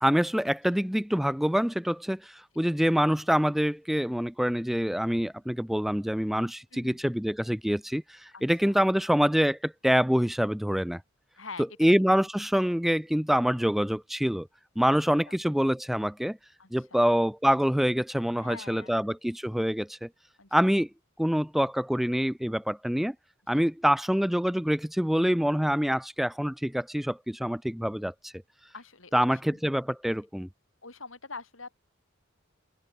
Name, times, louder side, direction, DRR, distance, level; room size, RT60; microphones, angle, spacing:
voice 1, 0.0-11.0 11.8-14.5 14.8-16.4 16.7-20.1 20.5-20.9 21.2-23.1 23.5-28.3 29.1-30.5, equal, ahead, 0.3 m, -26 dB
voice 2, 6.7-7.0 8.3-8.8 11.4-11.9 14.9-15.0 15.3-15.4 16.6-17.0 18.4-19.1 20.4-20.6 23.5-23.6 28.7-29.6 30.8-31.8, left 4 dB, 80° left, 7.2 m, -45 dB
head